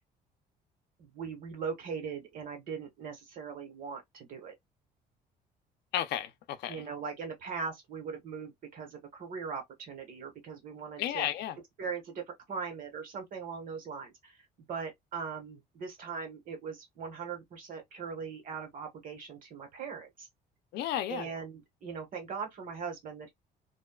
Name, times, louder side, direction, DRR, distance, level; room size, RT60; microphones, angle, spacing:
voice 1, 1.0-4.5 6.7-11.3 11.8-14.4 14.7-20.3 21.1-23.3, right 5 dB, 55° right, 1.4 m, -40 dB
voice 2, 5.9-6.8 11.0-11.6 20.7-21.3, left 11 dB, 75° left, 0.5 m, -33 dB
2.5 x 2.2 x 2.3 m
cardioid pair, 110°, 17 cm